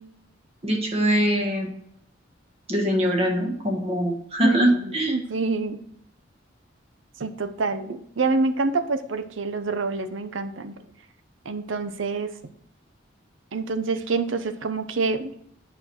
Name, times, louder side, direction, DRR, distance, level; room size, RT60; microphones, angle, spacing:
voice 1, 0.6-1.7 2.7-5.1, equal, 30° right, 2 dB, 1.3 m, -23 dB
voice 2, 4.4-5.8 7.2-10.8 11.4-12.3 13.5-15.3, right 3 dB, 90° right, 10 dB, 0.7 m, -26 dB
8.7 x 4.6 x 4.6 m, 0.72 s
head